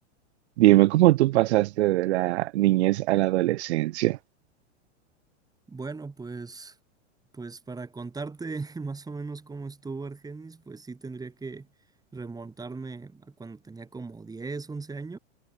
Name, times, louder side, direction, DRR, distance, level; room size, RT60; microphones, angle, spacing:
voice 1, 0.6-4.2, right 17 dB, 65° right, 1.1 m, -21 dB
voice 2, 5.7-6.8 7.3-11.7 12.1-15.2, right 4 dB, 10° right, 4.3 m, -38 dB
hypercardioid pair, 125°, 36 cm